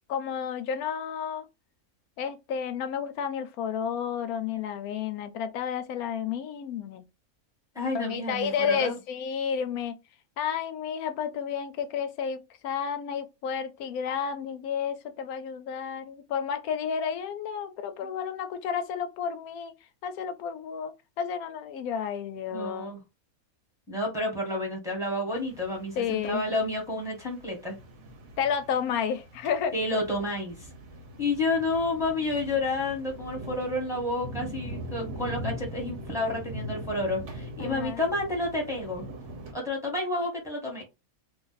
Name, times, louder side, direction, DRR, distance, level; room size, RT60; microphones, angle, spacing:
voice 1, 0.1-1.5 2.2-7.0 7.9-10.0 10.4-19.7 20.0-22.9 26.0-26.4 28.4-29.7 37.6-38.0, left 7 dB, 90° left, 1.0 m, -31 dB
voice 2, 7.7-8.9 22.5-23.0 23.9-27.8 29.7-30.7 31.2-39.0 39.5-40.8, left 2 dB, ahead, 1.2 m, -30 dB
sound 1, 25.3-39.5, equal, 60° right, 1.0 m, -41 dB
2.5 x 2.5 x 4.0 m
omnidirectional pair, 1.5 m